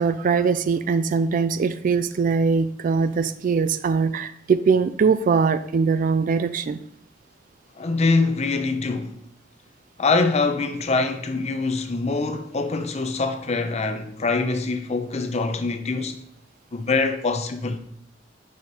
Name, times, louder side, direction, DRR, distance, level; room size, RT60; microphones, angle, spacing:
voice 1, 0.0-6.8, right 5 dB, 45° right, 0.3 m, -21 dB
voice 2, 7.8-9.1 10.0-16.2 16.7-17.8, left 3 dB, 35° left, 0.6 m, -24 dB
5.3 x 4.9 x 4.3 m
head